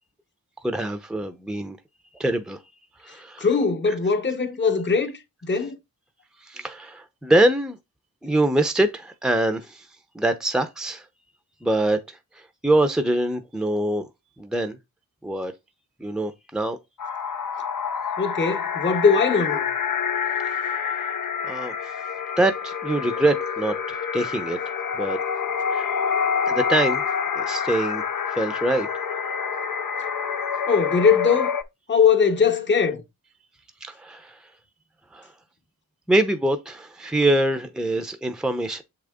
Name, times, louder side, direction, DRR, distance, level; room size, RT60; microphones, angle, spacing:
voice 1, 0.6-1.8 2.2-2.6 3.0-3.5 6.4-7.8 8.2-9.9 10.1-11.0 11.6-12.0 12.6-14.1 14.4-14.8 15.2-15.5 16.0-16.8 20.4-21.1 21.4-21.7 22.4-24.6 24.9-25.2 25.7-25.9 26.5-27.0 27.4-28.0 28.3-28.9 33.8-34.4 35.1-35.3 36.1-38.8, right 1 dB, ahead, 0.7 m, -24 dB
voice 2, 3.4-5.8 18.2-19.7 30.7-31.5 31.9-33.0, left 5 dB, 30° left, 0.9 m, -21 dB
sound 1, 17.0-31.6, left 6 dB, 60° left, 0.7 m, -27 dB
7.3 x 3.8 x 3.6 m
wide cardioid pair, 80°, 37 cm